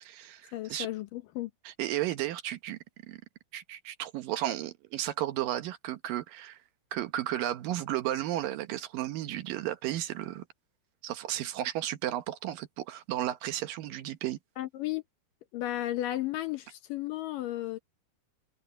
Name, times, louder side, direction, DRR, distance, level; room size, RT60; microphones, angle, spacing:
voice 1, 0.0-0.9 1.6-2.8 3.1-3.2 3.5-6.6 6.9-10.5 11.0-14.4, right 13 dB, 70° right, 2.4 m, -33 dB
voice 2, 0.5-1.5 14.6-15.0 15.5-17.8, left 15 dB, 75° left, 2.3 m, -34 dB
omnidirectional pair, 4.4 m